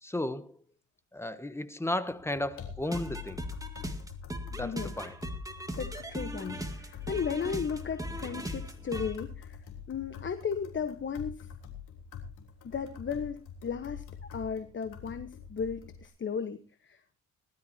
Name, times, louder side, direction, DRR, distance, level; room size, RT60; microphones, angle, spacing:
voice 1, 0.0-0.6 1.1-3.4 4.5-5.2, left 1 dB, 10° left, 1.1 m, -34 dB
sound 1, 2.1-16.1, left 7 dB, 80° left, 3.4 m, -45 dB
sound 2, 2.8-9.2, equal, 10° right, 2.1 m, -39 dB
voice 2, 5.8-9.6 9.9-11.5 12.6-14.0 14.3-17.2, left 6 dB, 40° left, 1.3 m, -35 dB
20.0 x 13.0 x 2.9 m
cardioid pair, 90°, 30 cm